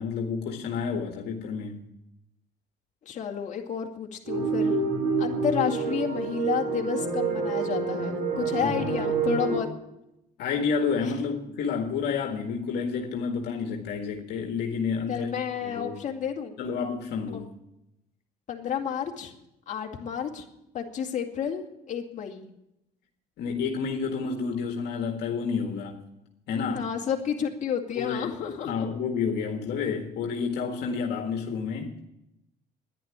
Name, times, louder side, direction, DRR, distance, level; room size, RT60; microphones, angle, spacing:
voice 1, 0.0-1.8 8.6-9.1 10.4-16.0 16.6-17.5 23.4-26.0 26.5-26.9 28.0-28.3 28.7-32.0, left 5 dB, 75° left, 1.8 m, -30 dB
voice 2, 3.0-4.8 5.2-9.7 11.0-11.1 15.1-16.5 17.3-17.4 18.5-19.3 19.7-20.5 20.7-22.5 26.7-28.9, left 8 dB, 45° left, 2.4 m, -31 dB
sound 1, 4.3-9.6, right 4 dB, 85° right, 4.7 m, -27 dB
11.0 x 10.5 x 9.8 m
cardioid pair, 110°, 17 cm